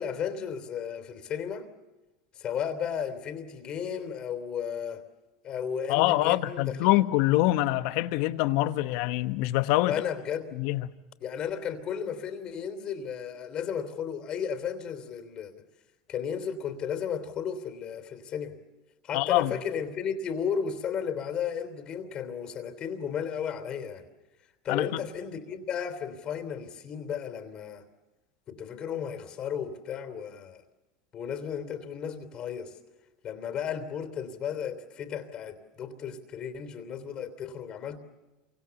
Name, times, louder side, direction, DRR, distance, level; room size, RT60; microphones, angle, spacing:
voice 1, 0.0-1.7 2.3-5.0 5.4-7.0 9.9-10.5 11.2-15.5 16.1-18.6 19.0-24.0 24.6-27.8 28.5-30.6 31.1-32.8 33.2-38.0, left 7 dB, 40° left, 3.2 m, -34 dB
voice 2, 5.9-10.0 10.5-10.9 19.1-19.5 24.7-24.9, left 17 dB, 65° left, 1.2 m, -25 dB
27.5 x 25.0 x 7.1 m
hypercardioid pair, 100°, 2 cm